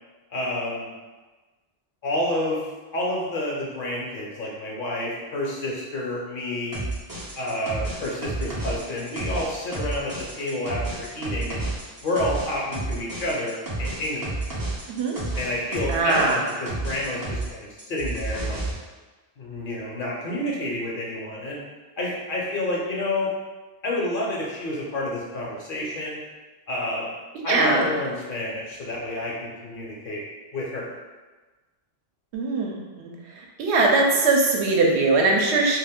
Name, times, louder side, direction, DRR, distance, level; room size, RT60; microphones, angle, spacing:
voice 1, 0.3-0.9 2.0-2.6 2.9-6.8 7.4-11.7 12.0-14.6 15.4-18.6 19.4-21.6 22.0-23.3 23.8-26.2 26.7-27.1 27.4-30.2 30.5-30.9, left 1 dB, 60° left, -4 dB, 0.7 m, -29 dB
sound 1, 6.7-17.5 17.8-18.7, right 2 dB, 35° right, 0.3 m, -31 dB
voice 2, 15.9-16.4 27.5-27.9 32.3-32.7 33.6-35.8, right 3 dB, 80° right, -1 dB, 0.8 m, -20 dB
2.4 x 2.2 x 3.5 m, 1.2 s
omnidirectional pair, 1.1 m